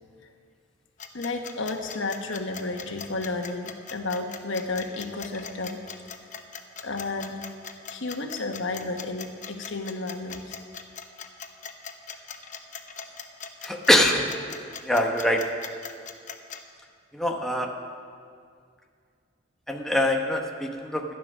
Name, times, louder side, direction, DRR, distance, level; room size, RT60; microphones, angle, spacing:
sound 1, 1.0-16.6, left 7 dB, 40° left, 0.8 m, -40 dB
voice 1, 1.1-5.8 6.8-7.4 7.9-10.6, left 3 dB, 90° left, 4 dB, 1.2 m, -32 dB
voice 2, 13.6-14.3 14.8-15.4 17.1-17.7 19.7-21.0, left 1 dB, ahead, 1 dB, 0.9 m, -23 dB
13.0 x 10.0 x 6.3 m, 2.2 s
head